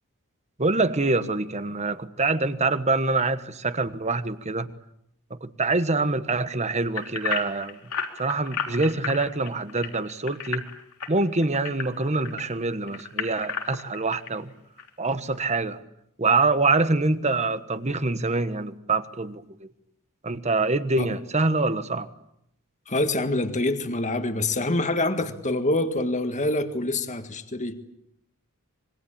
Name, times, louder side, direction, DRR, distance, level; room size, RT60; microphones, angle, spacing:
voice 1, 0.6-4.7 5.3-7.8 8.2-10.7 11.1-14.5 15.0-15.8 16.2-19.7 20.2-22.1, right 3 dB, 30° right, 12 dB, 1.3 m, -25 dB
sound 1, 7.0-12.4 12.9-14.3 14.8-14.9 15.4-15.5, left 6 dB, 85° left, 3.6 m, -32 dB
voice 2, 22.9-27.8, left 2 dB, 35° left, 8 dB, 1.8 m, -26 dB
25.5 x 22.0 x 8.8 m, 0.76 s
head